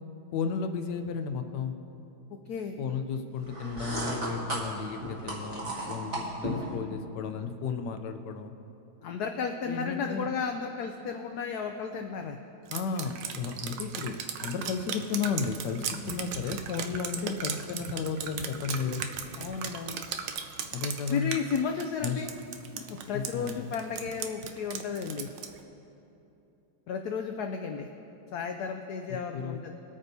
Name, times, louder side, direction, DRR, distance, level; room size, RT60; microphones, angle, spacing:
voice 1, 0.3-1.7 2.8-8.5 9.7-10.3 12.7-19.0 20.7-21.4 22.0-22.3 23.1-23.7 29.3-29.6, left 5 dB, 65° left, 7 dB, 1.1 m, -33 dB
sound 1, 3.4-6.7, right 1 dB, 35° right, 1.9 m, -35 dB
voice 2, 9.0-12.4 19.4-20.0 21.1-22.3 22.7-25.3 26.9-27.9 28.3-29.7, left 6 dB, 85° left, 4 dB, 0.8 m, -33 dB
Drip, 12.7-25.6, right 7 dB, 70° right, 1.2 m, -37 dB
21.0 x 8.9 x 2.7 m, 2.9 s
omnidirectional pair, 2.3 m